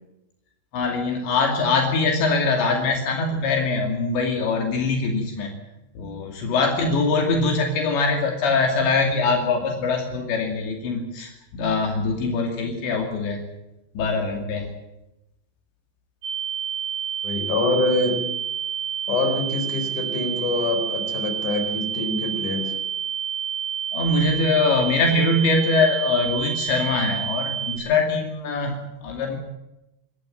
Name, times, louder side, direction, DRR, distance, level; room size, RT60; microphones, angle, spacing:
voice 1, 0.7-5.5 5.9-13.4 13.9-14.7 23.9-29.4, left 3 dB, 75° left, 2 dB, 4.8 m, -23 dB
sound 1, 16.2-27.8, right 9 dB, 80° right, 6.1 m, -29 dB
voice 2, 17.2-18.2 19.1-22.7, left 3 dB, 45° left, 5 dB, 5.6 m, -25 dB
27.0 x 13.5 x 9.0 m, 0.91 s
omnidirectional pair, 5.3 m